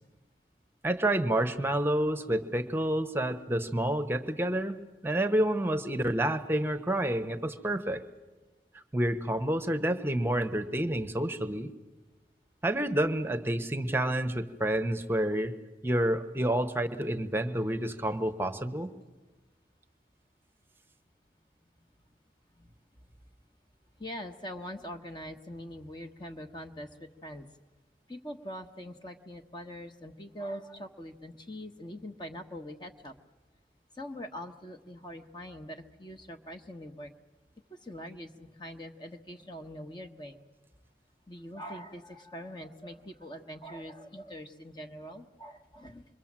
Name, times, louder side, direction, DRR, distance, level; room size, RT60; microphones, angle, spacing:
voice 1, 0.8-8.0 8.9-11.7 12.6-15.5 15.8-18.9, right 1 dB, 15° right, 9 dB, 1.0 m, -29 dB
voice 2, 24.0-27.5 28.1-33.1 33.9-37.1 37.7-40.4 41.3-46.1, equal, 25° left, 5 dB, 1.2 m, -43 dB
26.5 x 23.0 x 7.4 m, 1.2 s
head